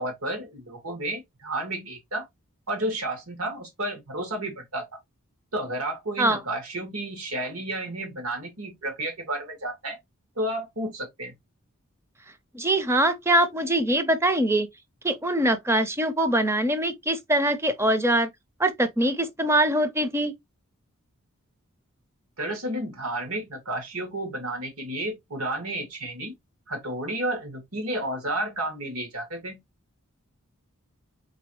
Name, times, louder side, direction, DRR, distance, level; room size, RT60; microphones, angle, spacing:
voice 1, 0.0-2.3 2.7-4.9 5.5-10.0 10.4-11.3 22.4-26.4 26.7-29.6, right 1 dB, 85° right, 2.3 m, -31 dB
voice 2, 12.5-14.7 15.0-18.3 18.6-20.3, right 1 dB, 10° right, 0.6 m, -23 dB
4.0 x 3.9 x 3.0 m
head